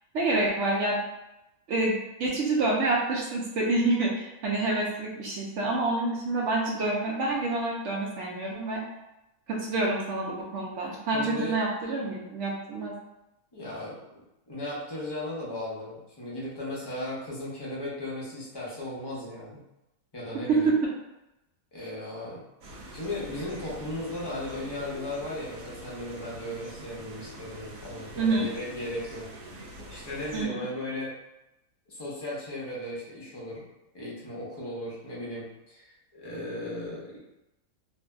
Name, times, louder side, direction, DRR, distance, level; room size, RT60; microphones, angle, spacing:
voice 1, 0.1-1.0 1.7-8.8 9.5-12.9 20.5-20.7 28.2-28.5 30.3-30.6, right 2 dB, 70° right, -3 dB, 0.9 m, -27 dB
voice 2, 11.1-11.6 13.5-19.6 20.1-20.7 21.7-29.3 29.9-31.1 31.9-33.6 33.9-37.2, left 1 dB, 25° left, -6 dB, 0.6 m, -36 dB
sound 1, 22.6-30.4, right 1 dB, 85° right, 1.0 m, -44 dB
2.6 x 2.6 x 2.2 m, 0.92 s
omnidirectional pair, 1.4 m